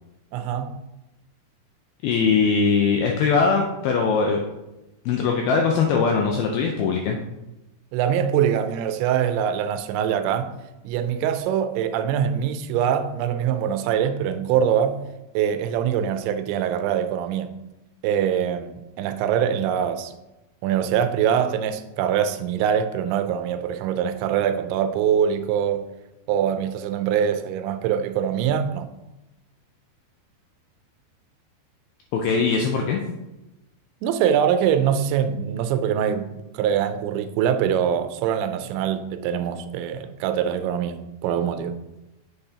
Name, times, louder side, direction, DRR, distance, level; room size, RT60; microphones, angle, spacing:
voice 1, 0.3-0.8 7.9-10.5 10.8-15.1 15.3-17.5 18.0-20.1 20.6-25.9 26.3-28.9 34.0-41.8, right 8 dB, 85° right, 2.9 m, -23 dB
voice 2, 2.0-4.4 5.1-7.2 32.1-33.0, left 5 dB, 85° left, 2.2 m, -21 dB
7.8 x 6.7 x 2.8 m
omnidirectional pair, 5.1 m